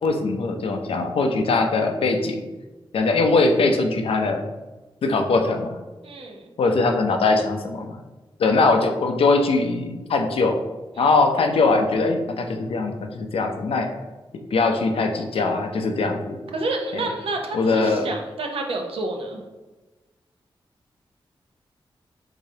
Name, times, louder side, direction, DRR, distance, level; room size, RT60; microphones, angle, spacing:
voice 1, 0.0-2.4 2.9-4.4 5.0-5.7 6.6-8.0 8.4-10.6 11.0-13.9 14.5-16.4 16.9-17.0 17.5-18.1, left 3 dB, 80° left, 4 dB, 0.6 m, -21 dB
voice 2, 6.0-6.5 10.9-11.2 16.5-19.4, right 2 dB, 80° right, 2 dB, 0.8 m, -29 dB
4.9 x 3.7 x 2.8 m, 1.2 s
wide cardioid pair, 130°, 9 cm